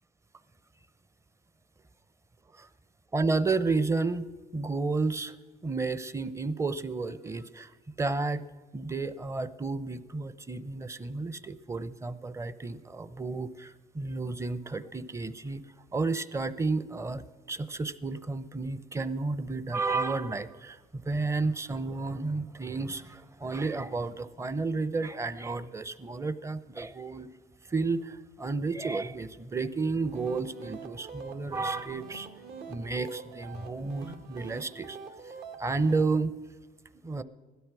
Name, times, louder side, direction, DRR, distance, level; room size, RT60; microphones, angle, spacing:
voice 1, 3.1-5.4 5.6-8.4 8.7-15.6 15.9-27.3 27.7-32.3 32.7-35.0 35.2-35.3 35.6-36.3 37.0-37.2, right 3 dB, 15° right, 14 dB, 0.7 m, -32 dB
sound 1, 29.9-36.0, right 5 dB, 60° right, 1.7 m, -45 dB
16.5 x 12.5 x 6.1 m, 1.4 s
cardioid pair, 110°, 17 cm